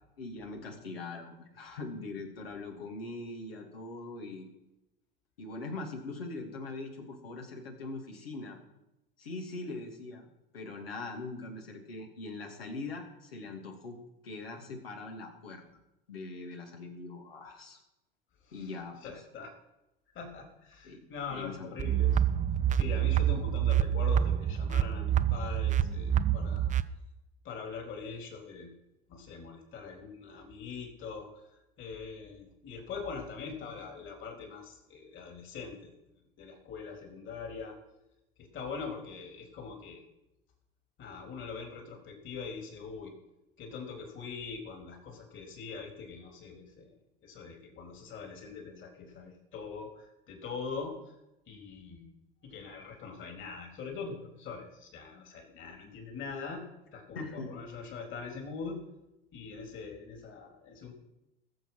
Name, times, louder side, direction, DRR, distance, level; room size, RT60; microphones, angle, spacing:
voice 1, 0.2-4.5 5.4-8.6 9.2-14.0 14.2-15.6 16.1-17.8 18.5-19.1 20.8-21.0 21.3-21.7 57.1-57.5, left 3 dB, 80° left, 2 dB, 2.8 m, -42 dB
voice 2, 19.0-19.5 20.1-22.2 22.7-26.7 27.4-28.7 29.1-31.3 31.8-35.9 36.4-37.8 38.4-40.0 41.0-43.1 43.6-46.9 47.2-51.1 51.5-52.1 52.4-56.6 56.9-58.8 59.3-60.9, left 5 dB, 40° left, 2 dB, 3.8 m, -42 dB
sound 1, 21.8-26.8, right 10 dB, 25° right, 0.7 m, -27 dB
20.5 x 7.2 x 5.8 m, 0.93 s
figure-of-eight pair, 75°, 30 cm